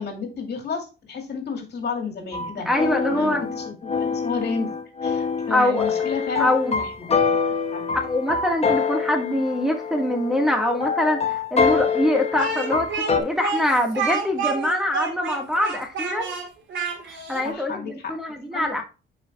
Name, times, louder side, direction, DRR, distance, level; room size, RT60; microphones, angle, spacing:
voice 1, 0.0-2.7 3.1-4.7 5.0-7.4 7.7-7.9 17.4-18.1 18.4-18.7, left 5 dB, 55° left, 2.3 m, -31 dB
sound 1, 2.3-13.2, left 5 dB, 30° left, 1.1 m, -25 dB
voice 2, 2.6-3.4 5.5-5.8 6.4-6.7 7.9-16.4 17.0-18.8, left 1 dB, ahead, 1.4 m, -24 dB
Speech, 12.4-17.5, right 5 dB, 75° right, 2.3 m, -29 dB
10.5 x 4.9 x 2.2 m
cardioid pair, 90°, 20 cm